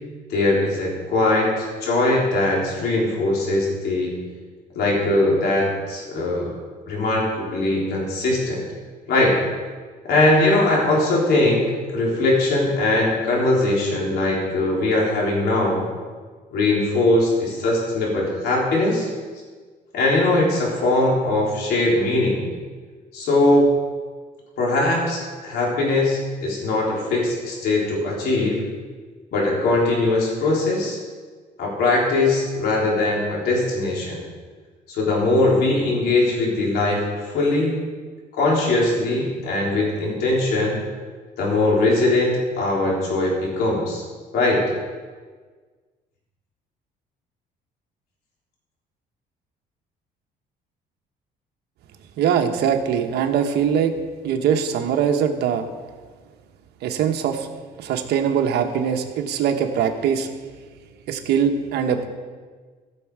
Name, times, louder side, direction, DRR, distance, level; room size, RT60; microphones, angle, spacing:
voice 1, 0.3-4.1 4.7-6.5 6.9-8.6 9.1-9.4 10.0-11.7 11.9-15.9 16.5-19.1 19.9-22.4 23.1-23.7 24.6-28.7 29.3-31.0 31.6-34.2 34.9-37.8 38.3-40.8 41.4-44.0 44.3-44.6, left 2 dB, 70° left, -3 dB, 3.8 m, -20 dB
voice 2, 52.2-53.9 54.2-55.6 56.8-57.5 57.8-60.3 61.1-62.1, right 8 dB, 75° right, 5 dB, 1.2 m, -22 dB
16.0 x 6.6 x 4.8 m, 1.5 s
cardioid pair, 110°, 17 cm